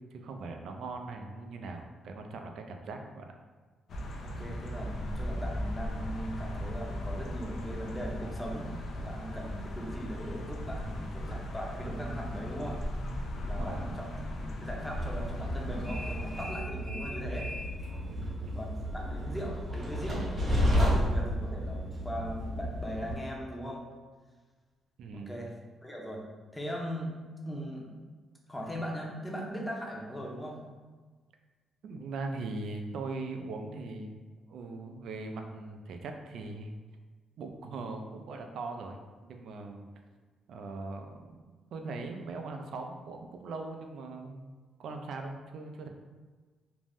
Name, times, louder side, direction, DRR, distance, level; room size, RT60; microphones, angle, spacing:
voice 1, 0.0-3.3 13.4-13.8 18.1-18.7 25.0-25.4 31.8-34.2 34.5-36.8 37.4-39.9 40.5-44.5 44.8-45.9, right 3 dB, 70° right, 4 dB, 0.3 m, -40 dB
sound 1, 3.9-16.4, left 1 dB, 60° left, 0.3 m, -37 dB
voice 2, 4.2-12.8 13.5-14.1 14.4-17.5 18.5-23.8 25.1-25.5 25.8-27.1 27.5-27.9 28.5-30.6, equal, 10° left, -2 dB, 0.6 m, -39 dB
Train, 14.8-23.1, equal, 35° right, 0.8 m, -32 dB
2.5 x 2.1 x 3.3 m, 1.4 s
cardioid pair, 90°, 0 cm